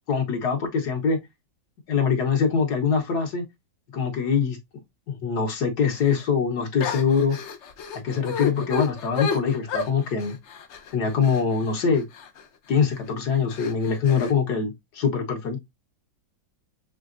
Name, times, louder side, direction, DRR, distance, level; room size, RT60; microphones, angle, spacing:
voice 1, 0.1-1.2 1.9-3.5 3.9-4.6 5.1-7.4 7.9-10.4 10.9-12.1 12.7-15.6, left 6 dB, 60° left, 1.5 m, -23 dB
sound 1, 6.0-6.2 6.8-12.4 12.9-13.1 13.5-14.3, left 6 dB, 80° left, 0.6 m, -32 dB
6.2 x 3.4 x 2.5 m
omnidirectional pair, 2.1 m